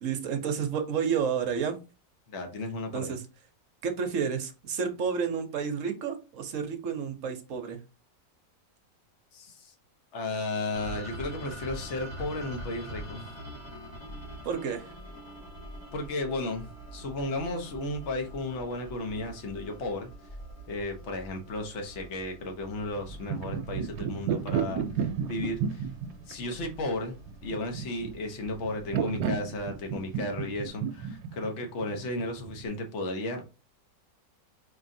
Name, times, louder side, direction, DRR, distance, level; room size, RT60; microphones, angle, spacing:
voice 1, 0.0-1.8 2.9-3.2 3.8-7.8 14.4-14.9, right 6 dB, 60° right, 6 dB, 0.9 m, -30 dB
voice 2, 2.3-3.2 9.3-9.7 10.1-13.2 15.9-20.1 20.7-25.9 26.3-33.4, left 2 dB, 50° left, 4 dB, 1.1 m, -34 dB
sound 1, 10.7-30.7, equal, 15° left, 1.5 m, -45 dB
sound 2, 23.0-32.7, right 7 dB, 85° right, 1.2 m, -33 dB
4.4 x 3.1 x 2.6 m, 0.31 s
omnidirectional pair, 1.9 m